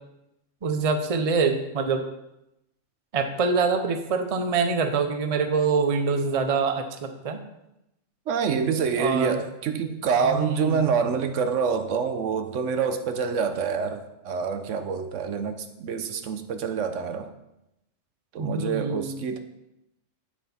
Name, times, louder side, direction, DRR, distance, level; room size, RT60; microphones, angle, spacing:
voice 1, 0.6-2.0 3.1-7.4 9.0-9.4 10.2-10.8 18.4-19.2, right 4 dB, 35° right, 6 dB, 0.7 m, -25 dB
voice 2, 8.3-17.3 18.3-19.4, right 6 dB, 75° right, 8 dB, 1.1 m, -26 dB
9.1 x 7.1 x 4.3 m, 0.86 s
omnidirectional pair, 1.3 m